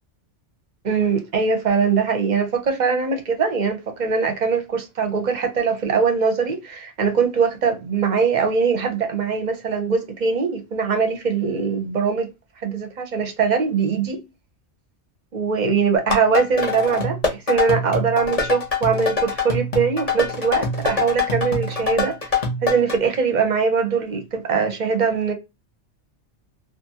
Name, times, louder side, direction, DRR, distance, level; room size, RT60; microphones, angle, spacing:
voice 1, 0.8-12.3 12.6-14.2 15.3-25.3, right 5 dB, 50° right, 0.6 m, -22 dB
sound 1, 16.0-23.0, left 4 dB, 35° left, 0.7 m, -24 dB
2.5 x 2.4 x 2.7 m
omnidirectional pair, 1.2 m